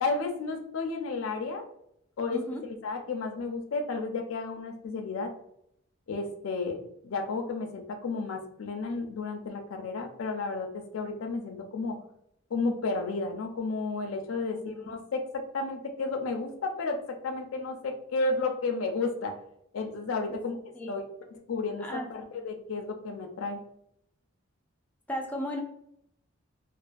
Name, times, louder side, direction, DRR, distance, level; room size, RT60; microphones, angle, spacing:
voice 1, 0.0-1.7 2.2-5.3 6.1-6.8 7.0-12.0 12.5-19.3 19.7-20.6 20.9-21.0 21.5-23.6, left 3 dB, 75° left, 4 dB, 0.4 m, -32 dB
voice 2, 2.3-2.6 14.3-14.9 20.3-20.4 20.7-21.0 21.8-22.1 25.1-25.6, equal, 10° left, 0 dB, 0.3 m, -36 dB
2.4 x 2.3 x 2.5 m, 0.74 s
head